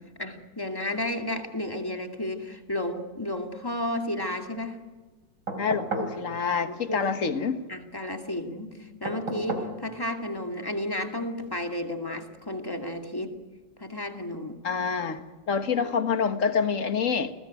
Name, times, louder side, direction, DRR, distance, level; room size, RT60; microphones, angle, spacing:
voice 1, 0.0-4.8 5.7-5.8 6.7-7.0 7.3-7.4 7.7-13.4 13.8-14.6 15.8-15.9, left 1 dB, 10° left, 2.3 m, -32 dB
sound 1, 5.5-6.2 9.0-9.8 11.4-11.5, right 2 dB, 70° right, 4.9 m, -33 dB
voice 2, 5.6-7.6 14.6-17.3, left 6 dB, 45° left, 1.8 m, -27 dB
29.5 x 21.0 x 9.3 m
omnidirectional pair, 1.9 m